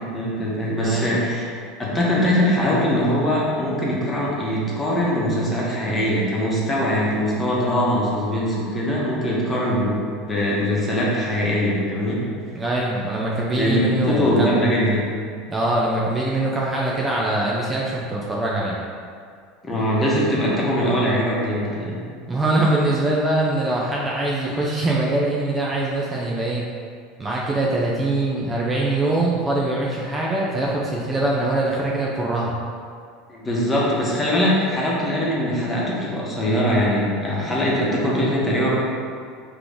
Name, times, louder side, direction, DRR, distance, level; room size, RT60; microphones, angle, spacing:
voice 1, 0.0-1.5 1.8-12.2 13.5-15.0 19.6-22.0 33.3-38.7, equal, 20° left, -5 dB, 1.2 m, -22 dB
voice 2, 0.8-1.2 12.5-14.5 15.5-18.8 22.3-26.7 27.2-32.5, right 2 dB, 20° right, -4 dB, 0.6 m, -23 dB
3.7 x 3.0 x 3.5 m, 2.1 s
hypercardioid pair, 80°, 0 cm